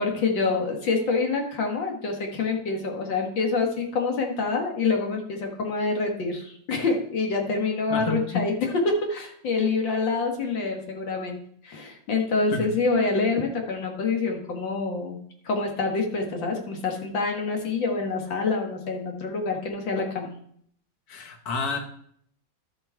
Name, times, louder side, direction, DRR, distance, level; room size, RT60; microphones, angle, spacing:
voice 1, 0.0-11.4 11.6-20.3, left 4 dB, 75° left, 2 dB, 2.3 m, -26 dB
voice 2, 7.9-8.4 12.5-12.7 21.1-21.8, left 4 dB, 55° left, 4 dB, 1.6 m, -29 dB
12.5 x 5.5 x 4.5 m, 0.65 s
omnidirectional pair, 2.0 m